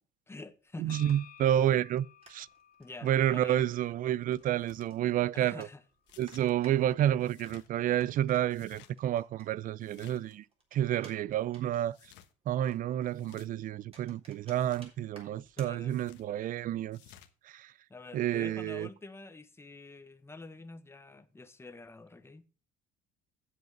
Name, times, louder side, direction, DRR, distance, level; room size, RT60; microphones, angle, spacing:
voice 1, 0.3-1.0 2.8-3.7 5.3-5.8 6.8-6.9 15.6-16.0 17.9-22.4, left 3 dB, 15° left, 1.0 m, -47 dB
sound 1, 0.6-9.8 10.1-16.4, right 2 dB, 30° right, 3.6 m, -60 dB
voice 2, 0.8-2.5 3.0-5.7 6.2-10.4 10.7-12.0 12.5-17.0 17.5-17.7 18.1-18.9, right 11 dB, 45° right, 0.4 m, -30 dB
sound 2, 0.9-5.0, left 9 dB, 50° left, 1.2 m, -55 dB
sound 3, 4.6-4.9 6.1-6.5 7.2-7.7 8.5-8.9 9.8-10.4 11.9-12.3 13.1-13.5 14.5-14.9 15.9-16.3 16.9-17.3, left 11 dB, 70° left, 1.2 m, -57 dB
8.0 x 7.9 x 5.2 m
cardioid pair, 110°, 19 cm